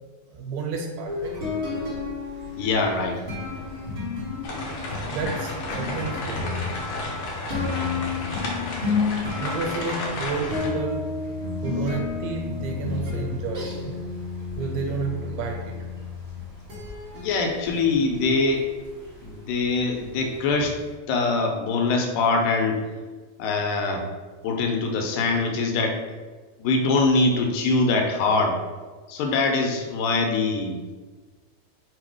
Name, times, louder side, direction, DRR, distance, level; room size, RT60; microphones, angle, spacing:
voice 1, 0.3-1.4 5.1-6.6 9.4-11.1 11.6-14.0 14.6-15.7, right 5 dB, 85° right, 1 dB, 1.9 m, -31 dB
sound 1, 1.0-20.8, left 4 dB, 35° right, 0.8 m, -32 dB
voice 2, 2.6-3.2 17.1-18.7 19.2-20.8 21.1-22.8 23.4-24.1 24.4-26.0 26.6-28.6 29.1-30.8, left 3 dB, 90° left, 2 dB, 2.0 m, -23 dB
sound 2, 4.4-10.7, left 2 dB, 70° left, 1.9 m, -32 dB
4.7 x 2.1 x 4.7 m, 1.3 s
omnidirectional pair, 3.4 m